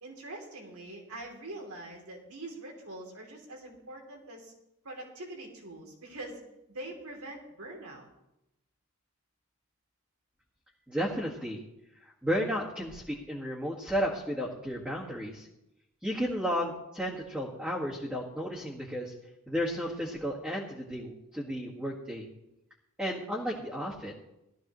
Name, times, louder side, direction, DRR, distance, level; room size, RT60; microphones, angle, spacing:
voice 1, 0.0-4.5 4.8-6.4 6.7-8.1, right 2 dB, 75° right, 1 dB, 3.1 m, -44 dB
voice 2, 10.9-11.6 12.0-15.5 16.0-19.1 19.5-22.3 23.0-24.1, equal, 5° right, -5 dB, 1.7 m, -33 dB
17.0 x 13.5 x 3.1 m, 0.87 s
head